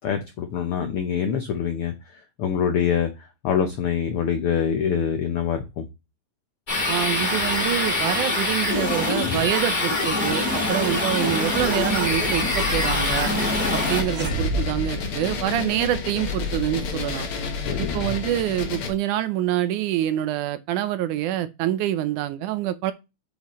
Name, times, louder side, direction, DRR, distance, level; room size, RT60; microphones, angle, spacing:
voice 1, 0.0-1.9 2.4-3.1 3.4-5.8 17.7-18.0, left 8 dB, 90° left, 1.2 m, -25 dB
sound 1, 6.7-14.0, left 2 dB, 20° left, 1.5 m, -24 dB
voice 2, 6.9-13.3 13.7-17.3 17.8-22.9, right 13 dB, 80° right, 2.1 m, -26 dB
sound 2, 11.5-18.9, left 5 dB, 60° left, 1.5 m, -30 dB
sound 3, 14.0-16.0, right 1 dB, 50° right, 3.1 m, -29 dB
7.9 x 5.1 x 3.0 m
omnidirectional pair, 3.7 m